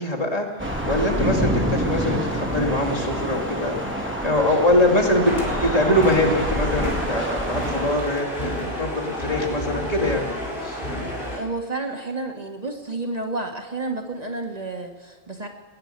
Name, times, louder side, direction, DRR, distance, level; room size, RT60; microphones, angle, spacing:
voice 1, 0.0-5.3 5.6-8.3 8.8-10.3 10.6-10.9, left 1 dB, 35° left, -2 dB, 2.6 m, -23 dB
Thunder / Rain, 0.6-8.0, equal, 10° right, 2.5 m, -27 dB
sound 1, 5.2-11.4, equal, 60° left, 4.1 m, -30 dB
voice 2, 11.3-15.5, right 2 dB, 40° right, 2 dB, 1.6 m, -30 dB
21.0 x 10.0 x 6.8 m, 1.2 s
omnidirectional pair, 1.0 m